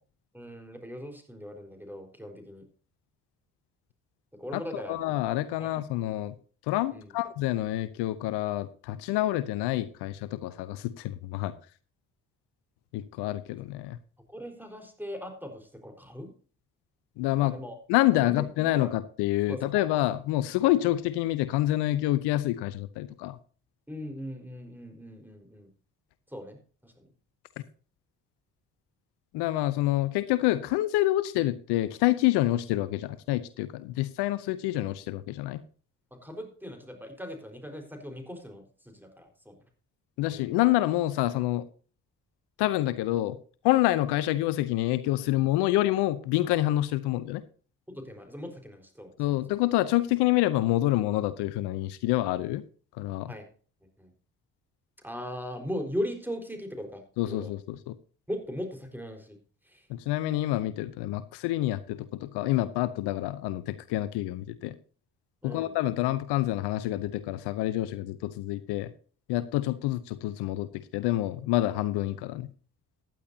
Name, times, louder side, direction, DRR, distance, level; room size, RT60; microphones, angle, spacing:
voice 1, 0.3-2.6 4.4-5.0 5.6-6.1 6.9-7.1 14.3-16.3 17.4-17.8 18.1-18.4 18.7-18.9 19.5-19.8 23.9-25.7 26.3-27.1 36.1-39.7 40.3-40.5 47.9-49.3 53.3-53.5 54.0-54.1 55.0-57.5 58.3-59.4 59.6-59.9 65.4-65.7, equal, 5° right, 4 dB, 4.5 m, -39 dB
voice 2, 4.5-6.3 6.7-11.5 12.9-14.0 17.2-17.5 17.9-23.4 29.3-35.6 40.2-41.6 42.6-43.4 43.6-47.4 49.2-52.6 53.0-53.3 57.2-57.9 59.9-64.7 65.4-68.9 69.3-72.5, left 15 dB, 75° left, 15 dB, 0.7 m, -27 dB
15.0 x 10.5 x 2.8 m, 0.41 s
hypercardioid pair, 40°, 40 cm